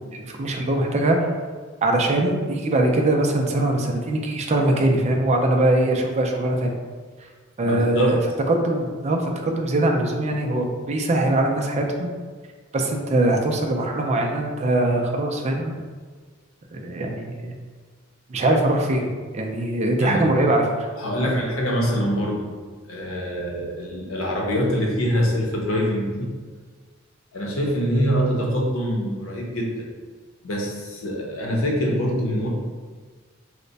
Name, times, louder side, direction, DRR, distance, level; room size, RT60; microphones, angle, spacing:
voice 1, 0.1-1.3 1.8-6.7 7.6-8.2 8.5-12.1 12.7-15.8 16.7-17.5 18.3-19.1 19.3-20.9 21.2-21.3, right 1 dB, 35° right, 2 dB, 0.4 m, -22 dB
voice 2, 7.6-8.2 20.0-20.3 21.0-22.5 22.9-26.3 27.3-29.7 30.4-32.5, equal, 85° left, -1 dB, 0.8 m, -24 dB
3.2 x 2.1 x 3.9 m, 1.5 s
head